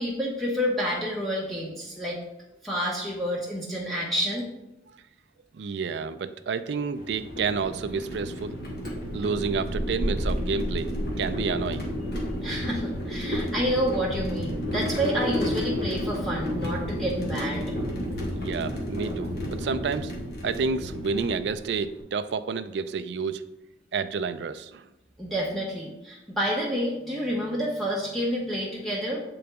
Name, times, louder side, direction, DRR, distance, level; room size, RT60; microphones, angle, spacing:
voice 1, 0.0-2.2 2.6-4.5 12.1-17.7 25.2-29.2, equal, ahead, -4 dB, 0.7 m, -29 dB
voice 2, 5.5-8.6 9.1-10.9 11.2-11.9 18.4-20.1 20.4-23.4 23.9-24.8, right 5 dB, 75° right, 11 dB, 0.4 m, -30 dB
sound 1, 7.0-22.0, equal, 60° left, 1.3 m, -31 dB
7.7 x 3.9 x 3.5 m, 0.94 s
head